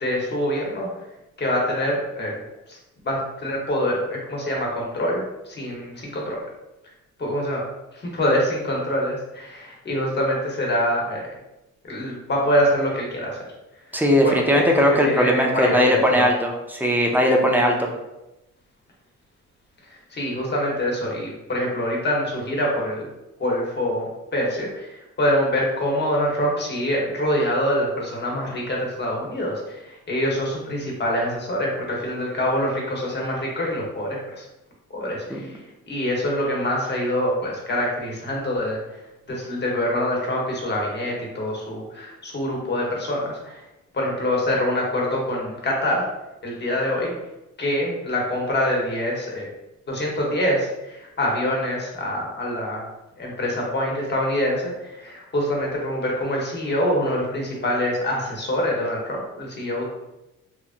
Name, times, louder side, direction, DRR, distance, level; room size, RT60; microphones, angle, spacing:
voice 1, 0.0-0.9 1.4-2.3 2.7-2.8 3.0-6.4 7.2-7.6 7.9-11.3 11.8-13.4 13.9-16.3 19.9-23.1 23.4-34.4 34.9-38.8 39.3-43.6 43.9-46.0 46.4-47.1 47.6-49.5 49.9-52.8 53.2-59.9, left 1 dB, 35° left, -2 dB, 0.9 m, -25 dB
voice 2, 13.9-17.9 35.3-35.4, equal, 5° right, 1 dB, 0.5 m, -19 dB
2.9 x 2.4 x 2.5 m, 0.96 s
cardioid pair, 90°, 30 cm